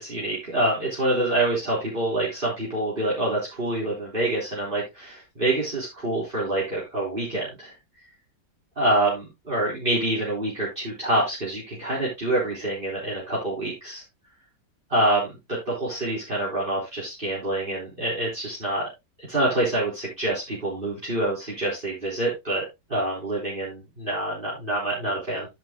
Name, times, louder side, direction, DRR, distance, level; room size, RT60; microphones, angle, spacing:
voice 1, 0.0-7.7 8.8-14.0 14.9-15.3 15.7-18.9 19.3-22.6 22.9-25.5, right 1 dB, 30° right, -6 dB, 4.2 m, -26 dB
10.5 x 10.0 x 2.3 m, 0.22 s
omnidirectional pair, 1.8 m